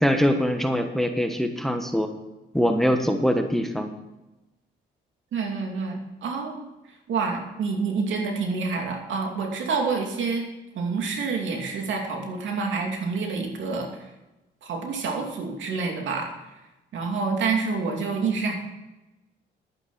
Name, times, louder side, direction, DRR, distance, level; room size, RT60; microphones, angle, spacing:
voice 1, 0.0-2.1 2.5-3.9, equal, ahead, 6 dB, 1.2 m, -23 dB
voice 2, 5.3-6.7 7.1-10.4 10.7-13.9 14.6-16.3 16.9-18.5, right 4 dB, 70° right, 2 dB, 2.7 m, -27 dB
11.0 x 9.6 x 5.7 m, 1.0 s
cardioid pair, 90°, 20 cm